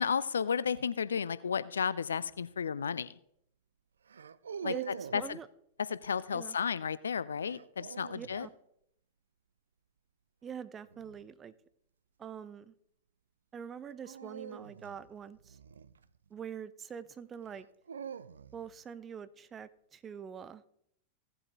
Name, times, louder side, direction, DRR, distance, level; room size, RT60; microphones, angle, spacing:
voice 1, 0.0-3.2 4.6-5.4 5.9-8.5, left 6 dB, 70° left, 17 dB, 0.4 m, -33 dB
sound 1, 2.2-2.5 4.1-5.3 7.4-8.4 10.9-11.2 14.0-16.4 17.5-18.8, right 7 dB, 70° right, 0.4 m, -45 dB
voice 2, 4.7-5.5 6.3-6.6 8.1-8.5 10.4-11.5 12.2-12.7 13.5-15.6 16.3-17.7 18.5-20.6, right 7 dB, 25° right, 15 dB, 0.6 m, -44 dB
17.0 x 7.8 x 3.0 m, 0.72 s
figure-of-eight pair, 90°, 0 cm